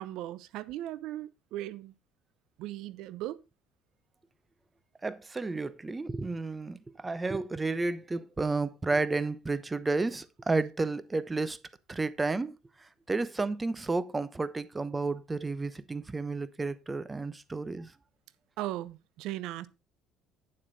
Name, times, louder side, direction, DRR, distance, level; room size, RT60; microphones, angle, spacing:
voice 1, 0.0-1.9 2.6-3.4 18.6-19.7, right 14 dB, 70° right, 0.7 m, -37 dB
voice 2, 5.0-11.6 11.9-12.5 13.1-17.9, right 3 dB, 20° right, 0.9 m, -31 dB
8.9 x 7.3 x 3.9 m
hypercardioid pair, 65°, 0 cm